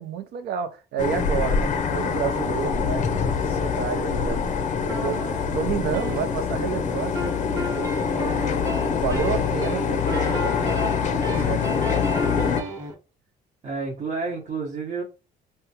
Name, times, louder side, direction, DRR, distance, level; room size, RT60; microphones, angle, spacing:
voice 1, 0.0-8.7 8.9-12.0, right 9 dB, 75° right, 0.6 m, -31 dB
sound 1, 1.0-12.6, left 6 dB, 45° left, 0.5 m, -25 dB
sound 2, 4.9-6.7 7.2-12.9, right 1 dB, 20° right, 0.9 m, -33 dB
voice 2, 13.6-15.0, right 4 dB, 45° right, 0.9 m, -30 dB
3.5 x 2.2 x 2.8 m
cardioid pair, 110°, 17 cm